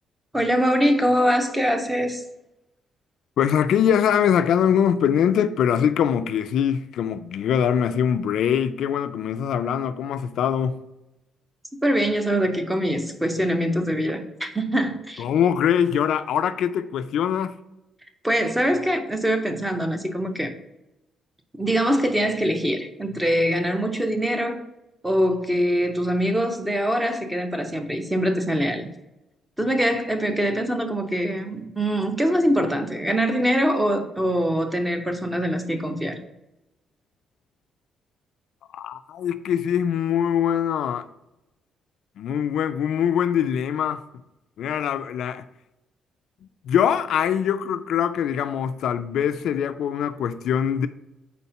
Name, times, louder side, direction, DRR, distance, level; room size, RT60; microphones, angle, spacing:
voice 1, 0.3-2.2 11.8-15.2 18.2-20.5 21.6-24.6 25.0-28.9 29.6-36.2, equal, 5° right, 0.6 m, -23 dB
voice 2, 3.4-10.8 15.2-17.6 38.7-41.1 42.2-44.0 44.6-45.5 46.6-50.9, left 8 dB, 70° left, 0.3 m, -23 dB
4.2 x 4.1 x 5.5 m
cardioid pair, 165°, 0 cm